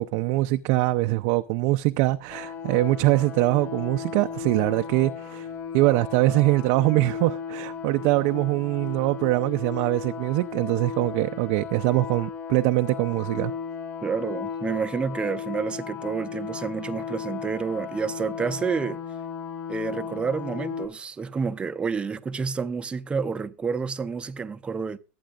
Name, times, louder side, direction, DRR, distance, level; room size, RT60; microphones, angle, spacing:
voice 1, 0.0-5.5 5.7-13.5, right 18 dB, 50° right, 0.5 m, -23 dB
sound 1, 2.3-20.9, left 7 dB, 35° left, 5.0 m, -35 dB
voice 2, 14.0-19.0 19.7-25.0, right 5 dB, 15° right, 0.7 m, -29 dB
23.0 x 8.8 x 2.5 m
supercardioid pair, 140°, 7 cm